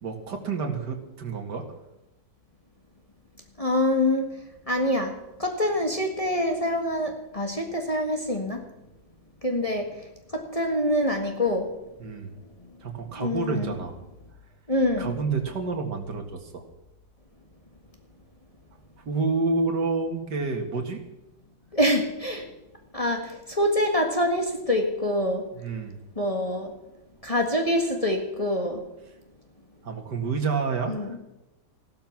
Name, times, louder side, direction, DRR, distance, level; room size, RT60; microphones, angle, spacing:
voice 1, 0.0-1.6 12.0-12.3 12.8-14.0 15.0-16.6 19.1-21.0 25.5-26.0 29.1-29.2 29.8-31.2, right 4 dB, 70° right, 3 dB, 2.5 m, -29 dB
voice 2, 3.6-4.2 4.7-5.1 5.4-8.6 9.4-9.9 10.3-11.7 13.2-13.7 14.7-15.1 21.7-22.4 22.9-25.4 26.2-26.7 27.2-28.8 30.9-31.1, left 1 dB, 20° left, 2 dB, 1.7 m, -25 dB
15.0 x 12.5 x 6.0 m, 0.95 s
omnidirectional pair, 1.9 m